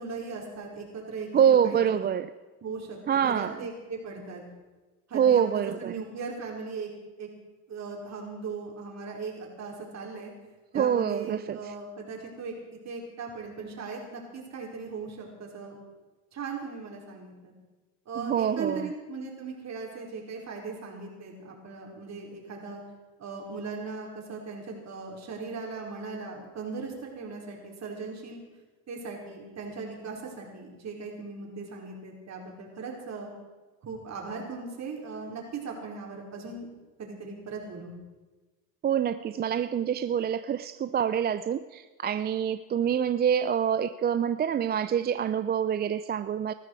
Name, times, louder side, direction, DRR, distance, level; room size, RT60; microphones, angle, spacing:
voice 1, 0.0-1.3 1.6-2.1 2.6-4.4 5.1-6.9 7.2-7.3 7.7-10.3 10.7-12.5 12.8-15.8 16.3-17.5 18.1-22.8 23.2-28.4 28.9-33.3 33.8-36.7 37.0-37.9, right 4 dB, 40° right, -1 dB, 5.0 m, -38 dB
voice 2, 1.3-2.3 3.1-3.6 5.1-6.0 10.7-11.7 18.2-18.9 38.8-46.5, right 8 dB, 25° right, 13 dB, 0.4 m, -26 dB
20.0 x 13.5 x 4.8 m, 1.2 s
supercardioid pair, 95°, 41 cm